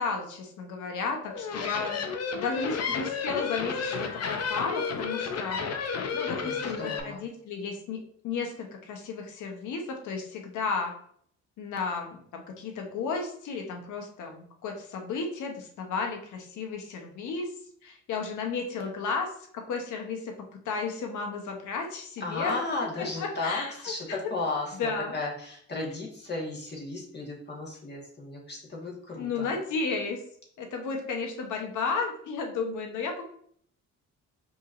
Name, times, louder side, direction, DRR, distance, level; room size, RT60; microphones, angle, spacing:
voice 1, 0.0-2.0 2.3-5.6 6.1-8.0 8.2-11.0 11.6-17.5 17.8-20.3 20.6-22.6 23.0-23.9 24.2-24.3 24.8-25.2 29.2-30.2 30.6-33.3, left 4 dB, 75° left, 3 dB, 1.0 m, -33 dB
sound 1, 1.2-7.0, left 5 dB, 55° left, 0.7 m, -32 dB
voice 2, 6.4-7.2 22.2-29.5, left 3 dB, 35° left, -2 dB, 1.5 m, -34 dB
5.3 x 3.0 x 2.5 m, 0.63 s
cardioid pair, 90°, 30 cm